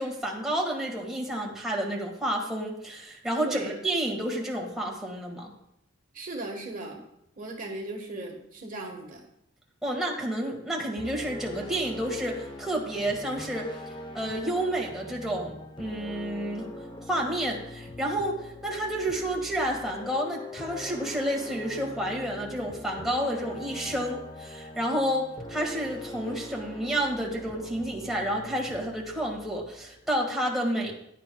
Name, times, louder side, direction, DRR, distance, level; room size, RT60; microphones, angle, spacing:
voice 1, 0.0-5.5 9.8-13.7 14.1-16.7 17.1-30.9, right 1 dB, ahead, -3 dB, 1.8 m, -30 dB
voice 2, 3.4-3.7 6.1-7.0 7.4-9.2, right 2 dB, 40° right, 1 dB, 1.4 m, -37 dB
sound 1, 11.0-30.2, left 1 dB, 20° left, 0.8 m, -42 dB
15.0 x 10.0 x 2.3 m, 0.78 s
head